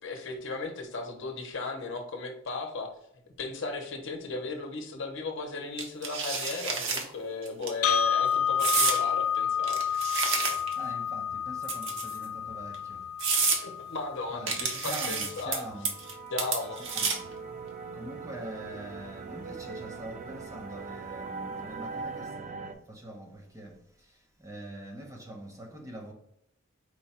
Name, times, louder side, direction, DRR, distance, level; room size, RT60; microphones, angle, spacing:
voice 1, 0.0-2.9 3.4-9.9 13.6-16.0 16.3-16.8, left 3 dB, 65° left, 0.8 m, -36 dB
sound 1, 5.8-7.0 7.5-7.7 8.6-9.0 9.6-10.8 11.6-12.2 12.7-12.8 13.2-13.6 14.5-15.6 15.8-16.1 16.4-17.3, right 5 dB, 65° right, 0.8 m, -29 dB
sound 2, 7.8-15.9, left 8 dB, 90° left, 0.5 m, -30 dB
voice 2, 10.8-13.0 14.3-14.5 14.8-15.9 16.9-17.2 18.0-23.8 24.4-26.1, right 1 dB, 15° right, 0.7 m, -43 dB
sound 3, 15.3-22.7, right 4 dB, 40° right, 0.4 m, -41 dB
4.7 x 2.3 x 4.1 m
head